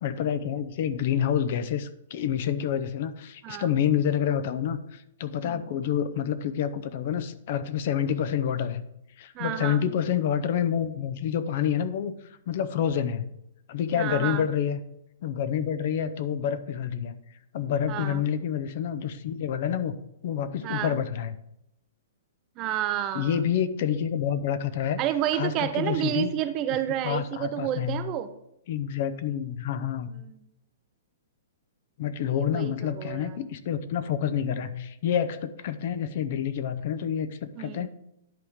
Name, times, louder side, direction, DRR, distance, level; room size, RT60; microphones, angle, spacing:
voice 1, 0.0-8.8 9.2-12.1 12.5-13.3 13.7-14.8 15.2-17.1 17.5-19.9 20.2-21.3 23.1-25.0 25.3-26.3 27.0-28.0 28.7-30.1 32.0-37.9, left 9 dB, 50° left, 12 dB, 0.7 m, -28 dB
voice 2, 9.3-9.8 14.0-14.5 17.9-18.2 20.6-21.0 22.6-23.4 25.0-28.3 30.1-30.4 32.2-33.4 37.6-37.9, right 12 dB, 30° right, 11 dB, 0.6 m, -30 dB
10.5 x 3.6 x 6.4 m, 0.78 s
hypercardioid pair, 150°, 0 cm